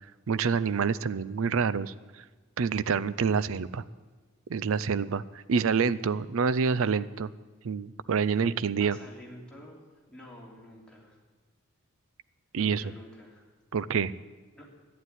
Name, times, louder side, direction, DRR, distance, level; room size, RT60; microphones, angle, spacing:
voice 1, 0.3-1.9 2.6-3.8 4.5-5.2 5.5-7.3 7.6-9.0 12.5-12.9 13.7-14.1, right 5 dB, 65° right, 17 dB, 0.5 m, -27 dB
voice 2, 8.8-9.8 10.1-11.2 12.6-13.5 14.5-14.7, left 1 dB, 5° left, -4 dB, 3.1 m, -49 dB
11.5 x 9.5 x 9.6 m, 1.4 s
head